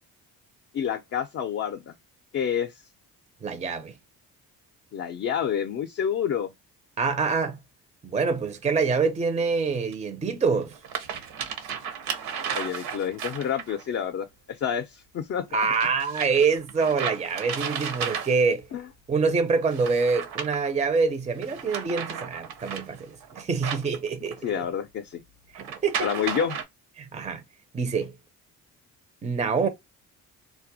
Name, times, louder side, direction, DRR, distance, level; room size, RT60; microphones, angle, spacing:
voice 1, 0.7-1.9 2.3-2.7 4.9-6.5 12.5-15.5 18.7-18.9 24.4-25.2 26.0-26.6, left 8 dB, 40° left, 0.4 m, -28 dB
voice 2, 3.4-3.9 7.0-7.6 8.0-10.7 15.5-18.6 19.1-24.4 25.6-26.1 27.0-27.4 27.7-28.1 29.2-29.7, right 5 dB, 20° right, 0.4 m, -25 dB
sound 1, 8.2-8.3 9.9-10.0 10.6-13.8 15.7-18.6 19.7-20.9 21.4-24.5 25.5-26.6, right 7 dB, 75° right, 0.7 m, -34 dB
2.3 x 2.0 x 2.6 m
cardioid pair, 80°, 38 cm